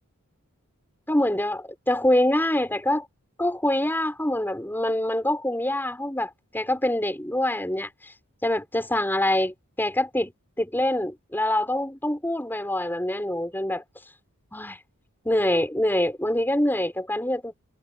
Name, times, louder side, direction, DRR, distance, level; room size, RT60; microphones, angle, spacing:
voice 1, 1.1-3.1 3.4-7.9 8.4-10.3 10.6-13.8 14.5-14.8 15.2-17.5, left 1 dB, 10° left, 6.6 m, -25 dB
head